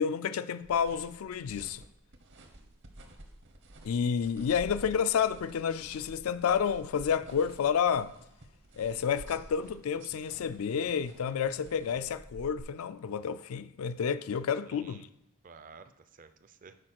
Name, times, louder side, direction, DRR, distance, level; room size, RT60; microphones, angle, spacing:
voice 1, 0.0-1.8 3.8-8.1 8.8-15.1, left 7 dB, 80° left, 0.4 m, -30 dB
sound 1, 0.6-12.6, right 1 dB, 60° right, 1.0 m, -51 dB
voice 2, 2.4-2.7 14.7-15.0 15.4-16.7, right 5 dB, 40° right, 0.5 m, -53 dB
6.4 x 4.7 x 5.9 m
head